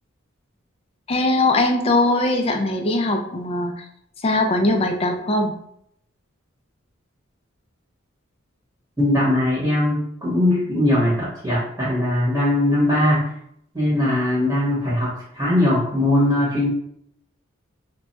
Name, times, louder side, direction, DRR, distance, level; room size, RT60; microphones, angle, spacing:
voice 1, 1.1-3.8 4.2-5.5, left 2 dB, 30° left, 4 dB, 0.4 m, -20 dB
voice 2, 9.0-13.3 13.7-16.7, left 1 dB, 15° right, -8 dB, 1.1 m, -20 dB
2.2 x 2.2 x 3.9 m, 0.72 s
head